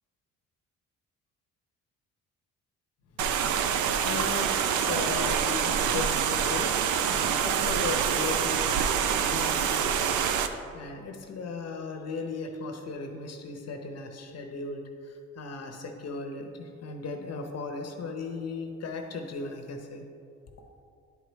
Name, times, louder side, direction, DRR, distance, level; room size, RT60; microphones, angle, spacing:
voice 1, 3.2-10.4 10.7-20.1, left 3 dB, 55° left, 4 dB, 0.9 m, -37 dB
sound 1, 3.2-10.5, right 8 dB, 75° right, 0.5 m, -26 dB
10.5 x 4.7 x 3.1 m, 2.5 s
cardioid pair, 90°, 30 cm